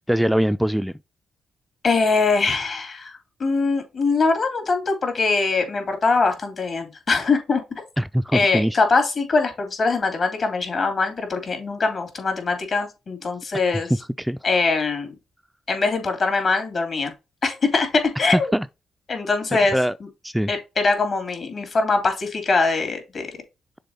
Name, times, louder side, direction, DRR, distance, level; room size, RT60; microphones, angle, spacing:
voice 1, 0.1-0.9 8.0-8.8 14.2-14.4 18.3-18.7 19.7-19.9 20.2-20.5, equal, 5° right, 0.3 m, -22 dB
voice 2, 1.8-7.6 8.3-13.9 14.4-15.1 15.7-17.1 17.4-18.5 19.1-19.8 20.5-23.3, left 4 dB, 55° left, 3.0 m, -22 dB
6.7 x 3.8 x 4.0 m
supercardioid pair, 60°, 0 cm